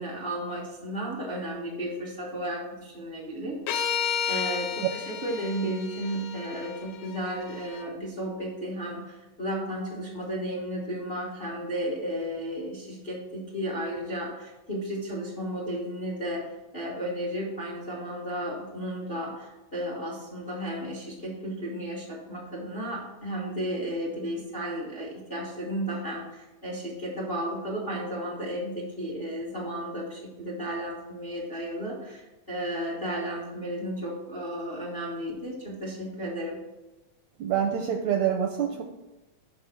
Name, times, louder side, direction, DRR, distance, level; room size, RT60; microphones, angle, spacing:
voice 1, 0.0-3.6 4.3-36.6, equal, 40° left, -4 dB, 0.8 m, -33 dB
sound 1, 3.7-7.8, left 7 dB, 90° left, 2.3 m, -32 dB
voice 2, 37.4-38.8, right 8 dB, 80° right, 3 dB, 1.7 m, -26 dB
6.3 x 5.6 x 5.9 m, 1.1 s
omnidirectional pair, 3.8 m